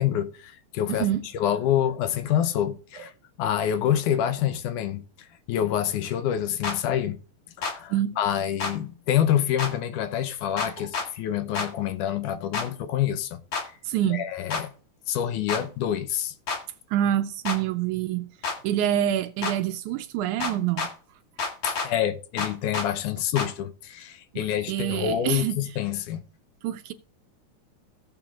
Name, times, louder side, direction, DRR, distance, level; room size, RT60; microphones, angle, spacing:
voice 1, 0.0-1.1 1.3-3.1 3.4-5.0 5.5-7.2 7.6-13.4 14.1-14.7 15.1-16.3 21.6-26.2, left 10 dB, 75° left, 2.2 m, -27 dB
voice 2, 0.9-1.2 3.0-3.1 7.9-8.2 10.8-10.9 13.8-14.2 16.9-18.3 18.6-20.9 24.3-25.6 26.6-26.9, right 11 dB, 80° right, 1.9 m, -26 dB
sound 1, 6.6-6.8 7.6-7.8 8.6-8.7 9.6-9.7 10.6-11.1 11.5-11.7 12.5-12.7 13.5-13.7 14.5-14.6 15.5-15.6 16.5-16.6 17.4-17.6 18.4-18.6 19.4-19.6 20.4-20.9 21.4-21.9 22.4-22.9 23.3-23.5, left 4 dB, 45° left, 2.0 m, -29 dB
17.5 x 7.2 x 2.4 m
omnidirectional pair, 3.8 m